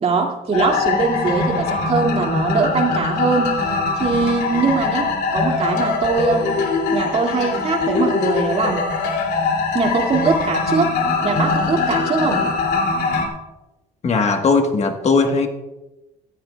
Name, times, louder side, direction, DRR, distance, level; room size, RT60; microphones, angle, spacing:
voice 1, 0.0-3.5 4.0-6.5 6.9-8.9 9.7-12.5, right 4 dB, 40° right, 0 dB, 2.2 m, -21 dB
sound 1, 0.5-13.3, left 4 dB, 75° left, 2.6 m, -22 dB
voice 2, 14.0-15.5, left 4 dB, 40° left, 5 dB, 1.3 m, -18 dB
17.5 x 13.0 x 2.3 m, 1.0 s
cardioid pair, 110°, 17 cm